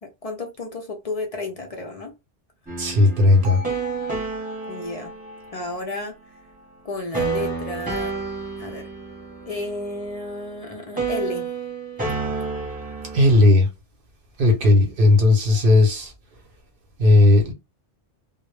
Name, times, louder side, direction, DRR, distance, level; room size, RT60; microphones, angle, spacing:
voice 1, 0.0-2.1 4.7-5.1 5.5-6.2 6.8-8.1 8.6-8.8 9.5-11.5 14.4-14.7, left 2 dB, 55° left, 0.4 m, -32 dB
sound 1, 2.7-5.8 7.1-10.6 11.0-13.5, right 4 dB, 10° right, 0.8 m, -30 dB
voice 2, 2.8-3.6 13.1-13.7 14.4-16.1 17.0-17.5, left 2 dB, 55° right, 0.8 m, -15 dB
Bell, 3.4-7.5, left 3 dB, 80° right, 0.9 m, -40 dB
2.0 x 2.0 x 3.1 m
omnidirectional pair, 1.2 m